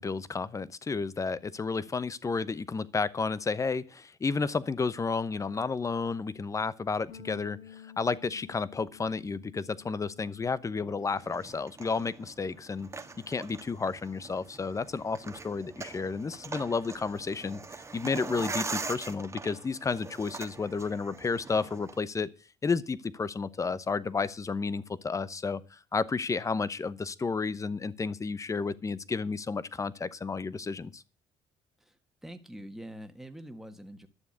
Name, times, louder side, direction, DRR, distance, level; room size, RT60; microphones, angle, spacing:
voice 1, 0.0-12.9 13.3-22.3 22.6-31.0, left 4 dB, 25° left, 0.9 m, -32 dB
sound 1, 7.1-11.6 11.9-13.3, left 8 dB, 80° left, 2.4 m, -54 dB
sound 2, 11.1-22.0, right 4 dB, 20° right, 1.4 m, -42 dB
voice 2, 32.2-34.1, equal, 5° right, 1.7 m, -44 dB
11.5 x 7.1 x 8.1 m
supercardioid pair, 85°, 13 cm